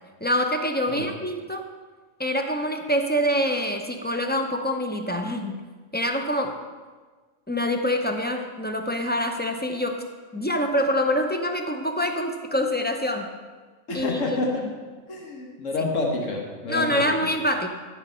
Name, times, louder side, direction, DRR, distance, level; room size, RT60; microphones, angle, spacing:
voice 1, 0.2-1.7 2.2-5.6 5.9-6.6 7.5-10.0 10.3-13.3 13.9-14.2 16.7-17.7, equal, 15° left, 4 dB, 0.3 m, -25 dB
voice 2, 13.9-14.6 15.1-17.3, left 3 dB, 80° left, 0 dB, 1.6 m, -28 dB
13.5 x 4.7 x 5.4 m, 1.4 s
omnidirectional pair, 1.3 m